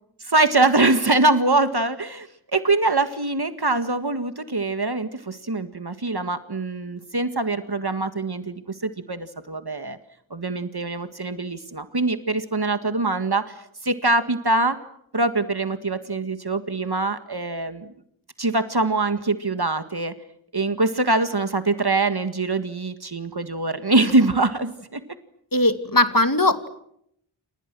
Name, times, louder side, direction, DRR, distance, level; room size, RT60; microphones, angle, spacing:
voice 1, 0.2-10.0 10.3-14.8 15.1-17.9 18.4-20.1 20.5-25.0, right 2 dB, 55° right, 10 dB, 1.9 m, -23 dB
voice 2, 25.5-26.7, left 2 dB, 45° left, 10 dB, 2.7 m, -19 dB
29.5 x 28.0 x 6.2 m, 0.72 s
wide cardioid pair, 45°, 47 cm